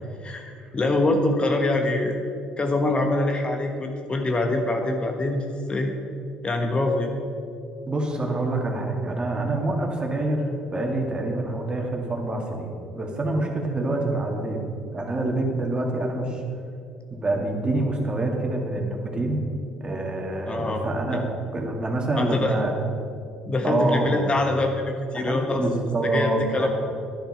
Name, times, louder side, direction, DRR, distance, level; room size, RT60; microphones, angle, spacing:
voice 1, 0.2-2.2 2.6-5.9 6.4-7.1 20.5-20.8 21.1-21.2 22.2-22.5 23.5-25.6 26.0-26.7, left 2 dB, 30° left, 4 dB, 1.3 m, -24 dB
voice 2, 7.9-14.6 14.9-16.4 17.1-19.4 19.8-21.2 21.5-22.7 23.6-24.3 25.1-26.7, right 2 dB, 25° right, 1 dB, 2.5 m, -26 dB
11.5 x 10.5 x 5.7 m, 2.5 s
hypercardioid pair, 55°, 4 cm